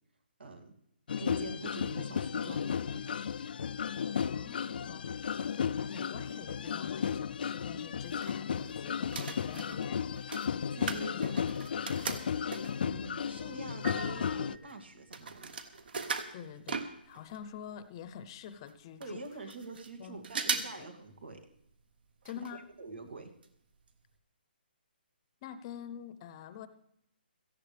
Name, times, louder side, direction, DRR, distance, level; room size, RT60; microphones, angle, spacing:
voice 1, 0.4-0.8 1.2-3.2 10.7-11.4 12.8-15.5 19.0-21.5 22.5-23.3, right 3 dB, 80° right, 4 dB, 2.5 m, -45 dB
sound 1, 1.1-14.5, left 7 dB, 60° left, 0.4 m, -34 dB
voice 2, 4.3-10.1 10.8-11.3 11.6-11.7 12.1-12.3 16.3-19.5 20.0-20.9 22.2-22.7 25.4-26.7, left 8 dB, 30° left, 13 dB, 0.8 m, -47 dB
sound 2, 7.8-8.7 9.0-12.9 13.5-13.6 13.8-17.4 17.7-17.8 18.0-18.1 18.7-18.8 19.0-19.9 20.2-20.8 21.2-21.3 22.2-22.5 22.8-22.9 23.4-23.5 23.9-24.0, right 5 dB, 60° right, 1.5 m, -39 dB
Piano, 13.8-15.7, right 4 dB, 10° right, 0.7 m, -47 dB
17.5 x 14.0 x 3.4 m, 0.76 s
hypercardioid pair, 160°, 6 cm